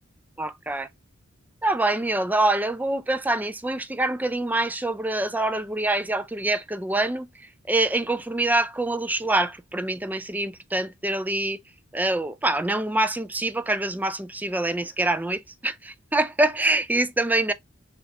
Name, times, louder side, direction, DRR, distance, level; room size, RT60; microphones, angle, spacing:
voice 1, 0.4-0.9 1.6-11.6 11.9-17.5, right 2 dB, 10° right, 0.4 m, -25 dB
6.3 x 2.4 x 2.9 m
head